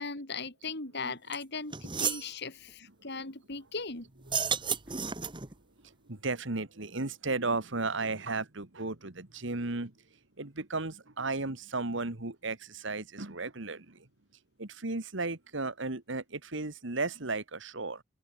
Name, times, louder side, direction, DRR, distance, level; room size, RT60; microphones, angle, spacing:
voice 1, 0.0-4.1, left 4 dB, 55° left, 3.4 m, -38 dB
sound 1, 1.3-1.4 1.7-2.3 4.2-5.5, right 6 dB, 25° right, 2.0 m, -32 dB
voice 2, 6.1-9.9 10.4-14.1 14.6-18.0, right 3 dB, 65° right, 2.0 m, -34 dB
open air
head